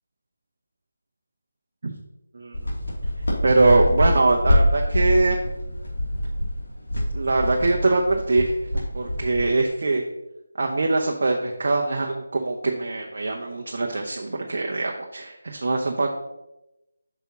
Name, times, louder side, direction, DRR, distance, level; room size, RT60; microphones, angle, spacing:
sound 1, 2.5-9.7, equal, 75° left, 2.6 m, -25 dB
voice 1, 3.4-5.4 7.1-10.0 10.6-16.1, right 2 dB, 55° right, 1 dB, 0.8 m, -22 dB
8.0 x 6.0 x 2.9 m, 0.91 s
figure-of-eight pair, 160°, 0 cm